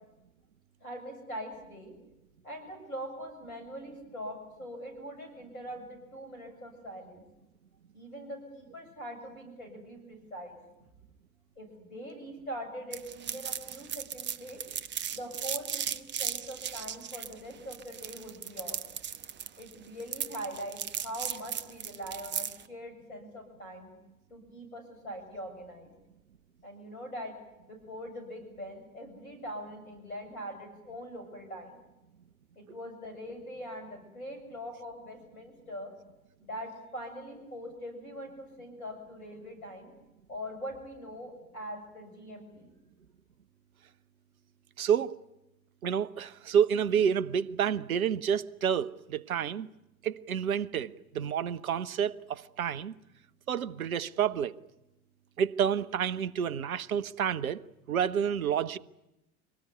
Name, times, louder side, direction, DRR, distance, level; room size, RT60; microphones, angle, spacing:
voice 1, 0.8-1.9 2.4-7.2 7.9-10.6 11.6-14.6 15.1-18.8 19.6-23.9 24.3-25.9 26.6-27.4 27.7-31.8 32.6-35.9 36.4-39.9 40.3-42.7, equal, 75° left, 7.5 m, -42 dB
sound 1, 12.9-22.6, right 8 dB, 25° right, 1.0 m, -36 dB
voice 2, 44.8-45.2 45.8-49.7 50.0-52.9 53.5-54.5 55.4-58.8, right 8 dB, 75° right, 0.9 m, -29 dB
24.5 x 19.0 x 9.6 m
figure-of-eight pair, 70°, 43 cm